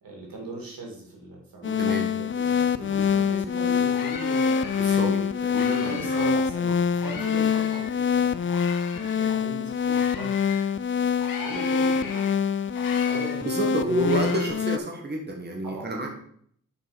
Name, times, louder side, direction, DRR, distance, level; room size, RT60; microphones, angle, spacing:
voice 1, 0.0-4.8 5.4-5.5 5.8-8.6 9.0-10.3 11.4-12.3 13.0-14.3 15.6-16.0, right 2 dB, 85° right, -1 dB, 2.9 m, -39 dB
sound 1, 1.6-14.8, left 7 dB, 35° left, 0.4 m, -25 dB
voice 2, 1.8-2.1 2.8-3.0 4.8-6.3 6.7-6.8 7.2-7.3 13.4-16.1, right 1 dB, 30° right, 2 dB, 1.6 m, -30 dB
sound 2, 3.3-3.4 3.7-6.5 6.9-10.7 11.2-14.5, left 6 dB, 85° left, 1.1 m, -39 dB
6.9 x 5.6 x 5.2 m, 0.62 s
wide cardioid pair, 80°, 34 cm